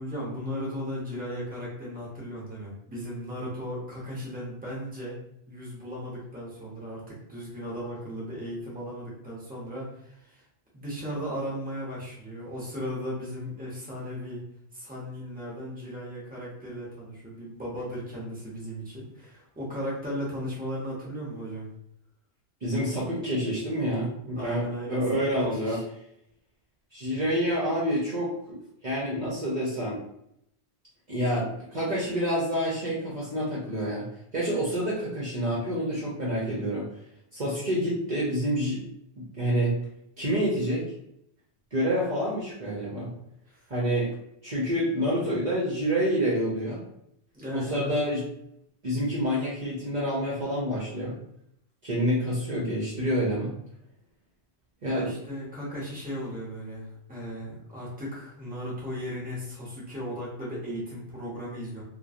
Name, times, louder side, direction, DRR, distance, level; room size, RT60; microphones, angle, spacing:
voice 1, 0.0-5.2 5.5-10.4 10.7-14.4 14.7-21.7 24.4-25.0 25.4-25.8 43.5-43.6 47.3-47.9 54.8-61.8, equal, 10° right, -5 dB, 0.8 m, -36 dB
voice 2, 22.6-25.8 26.9-28.6 28.8-30.0 31.1-34.0 34.3-36.9 37.3-38.8 39.2-39.8 40.2-40.9 41.7-43.1 43.7-44.1 44.4-46.8 47.5-48.2 48.8-51.1 51.8-53.5 54.8-55.1, equal, 50° right, -6 dB, 0.7 m, -28 dB
3.0 x 2.1 x 2.4 m, 0.75 s
omnidirectional pair, 1.1 m